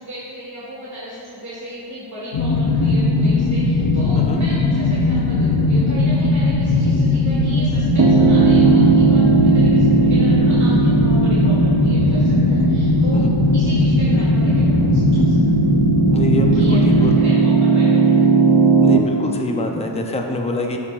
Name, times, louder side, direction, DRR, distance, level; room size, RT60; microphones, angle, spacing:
voice 1, 0.0-13.2 13.5-15.7 16.5-18.3, equal, 35° right, -9 dB, 1.6 m, -35 dB
sound 1, 2.3-17.2, left 3 dB, 70° left, 0.7 m, -18 dB
Piano, 8.0-19.0, right 5 dB, 60° right, 0.7 m, -17 dB
voice 2, 16.1-17.1 17.9-18.0 18.8-20.8, left 2 dB, 15° left, 2 dB, 0.6 m, -25 dB
13.0 x 5.1 x 2.5 m, 2.7 s
cardioid pair, 65°, 47 cm